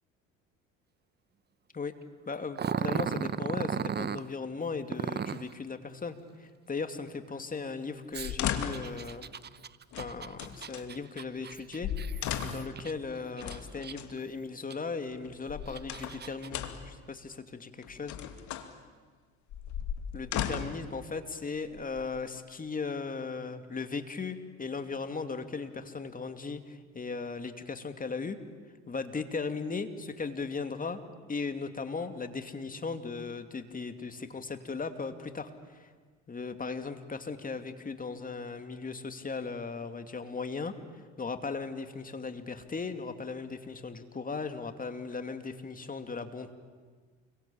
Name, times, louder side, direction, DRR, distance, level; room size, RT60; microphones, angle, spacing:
voice 1, 2.3-9.3 10.0-18.2 20.1-28.4 28.9-31.0 31.3-35.9 36.3-46.5, left 4 dB, 25° left, 8 dB, 2.7 m, -37 dB
Growling, 2.6-4.2 4.9-5.5 8.1-12.9 13.4-14.2 14.7-14.8 15.5-16.5, right 7 dB, 30° right, 1.0 m, -35 dB
sound 1, 8.2-9.0 9.9-10.9 11.5-11.6 11.8-12.8 13.4-14.1 15.2-16.2 16.5-16.9 17.8-18.7 19.5-20.9 21.7-22.4, left 9 dB, 65° left, 2.5 m, -36 dB
29.0 x 23.0 x 8.8 m, 1.5 s
supercardioid pair, 75°, 32 cm